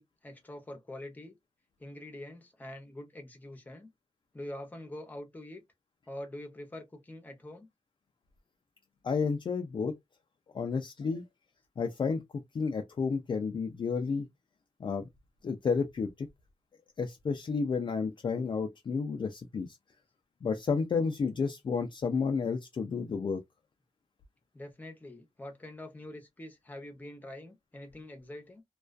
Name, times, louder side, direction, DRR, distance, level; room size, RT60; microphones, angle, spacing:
voice 1, 0.0-1.4 1.8-3.9 4.3-5.6 6.1-7.7 24.5-28.6, left 1 dB, 15° left, 0.7 m, -45 dB
voice 2, 9.0-10.0 10.5-11.2 11.8-12.2 12.5-14.3 14.8-15.1 15.4-16.3 17.0-19.8 20.4-23.4, left 5 dB, 40° left, 0.3 m, -31 dB
2.3 x 2.2 x 2.4 m
wide cardioid pair, 180°, 12 cm